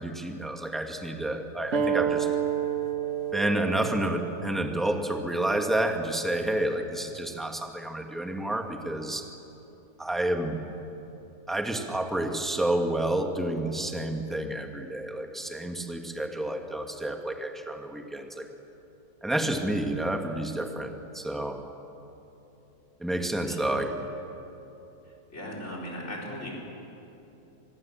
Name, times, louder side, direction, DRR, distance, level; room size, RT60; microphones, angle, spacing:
voice 1, 0.0-2.3 3.3-9.2 10.0-10.6 11.5-18.5 19.2-21.6 23.0-24.0, right 1 dB, ahead, 4 dB, 1.5 m, -29 dB
sound 1, 1.7-6.9, right 8 dB, 50° right, 1.6 m, -31 dB
voice 2, 25.3-26.5, left 1 dB, 45° left, -3 dB, 4.9 m, -37 dB
25.0 x 20.5 x 7.4 m, 2.9 s
omnidirectional pair, 1.7 m